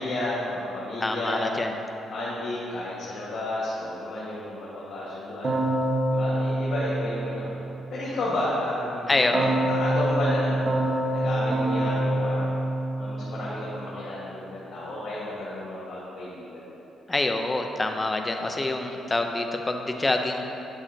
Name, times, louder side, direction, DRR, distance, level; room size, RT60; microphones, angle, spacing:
voice 1, 0.0-1.6 2.1-5.6 6.1-7.5 7.9-12.5 12.9-16.6, left 1 dB, 60° left, -8 dB, 1.6 m, -32 dB
voice 2, 1.0-1.8 9.1-9.5 17.1-20.5, left 2 dB, 20° left, 4 dB, 0.6 m, -26 dB
Keyboard (musical), 5.4-7.8 9.3-13.6, right 1 dB, 45° right, 1.3 m, -26 dB
10.0 x 7.3 x 2.8 m, 2.9 s
cardioid pair, 90°, 0 cm